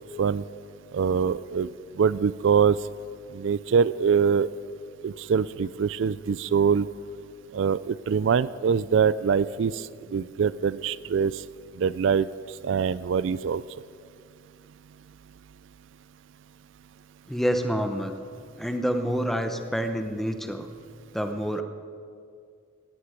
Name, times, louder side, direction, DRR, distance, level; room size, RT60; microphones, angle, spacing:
voice 1, 0.9-1.7 1.9-2.8 3.3-4.5 5.0-6.9 7.5-11.4 11.7-13.6, right 6 dB, 70° right, 18 dB, 0.3 m, -24 dB
voice 2, 17.3-18.1 18.6-20.7 21.1-21.6, equal, ahead, 7 dB, 0.8 m, -27 dB
18.0 x 15.0 x 5.1 m, 2.3 s
head